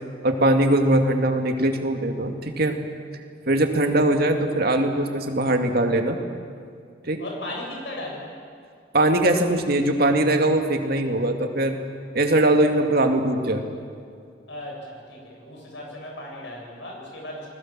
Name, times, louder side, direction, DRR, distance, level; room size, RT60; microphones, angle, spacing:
voice 1, 0.2-2.8 3.5-6.2 7.0-7.2 8.9-11.8 12.1-13.6, right 1 dB, 55° right, 4 dB, 2.3 m, -21 dB
voice 2, 7.2-8.3 14.5-17.5, left 1 dB, 75° left, -1 dB, 7.5 m, -36 dB
29.5 x 20.5 x 7.6 m, 2.3 s
head